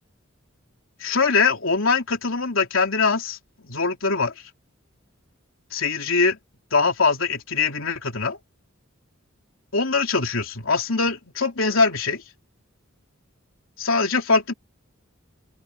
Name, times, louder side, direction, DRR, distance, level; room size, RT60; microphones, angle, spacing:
voice 1, 1.0-4.3 5.7-6.4 6.7-8.4 9.7-12.2 13.8-14.5, left 4 dB, 75° left, 3.3 m, -22 dB
open air
head